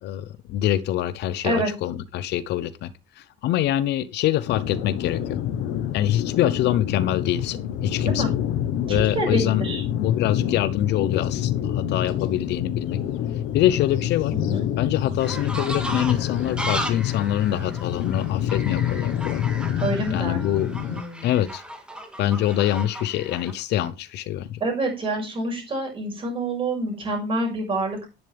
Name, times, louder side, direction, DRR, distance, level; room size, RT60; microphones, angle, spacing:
voice 1, 0.0-5.4 5.9-8.2 8.9-9.6 9.9-13.0 13.5-14.3 14.8-19.4 20.1-20.7 21.2-21.6 22.2-24.6, left 12 dB, 60° left, 0.7 m, -25 dB
sound 1, 4.5-21.0, left 10 dB, 85° left, 1.2 m, -27 dB
voice 2, 8.9-9.8 14.3-14.7 19.8-21.3 24.6-28.1, right 2 dB, 25° right, 6.1 m, -27 dB
sound 2, 15.2-23.5, right 1 dB, 5° right, 1.7 m, -35 dB
11.0 x 10.5 x 3.4 m
cardioid pair, 175°, 20 cm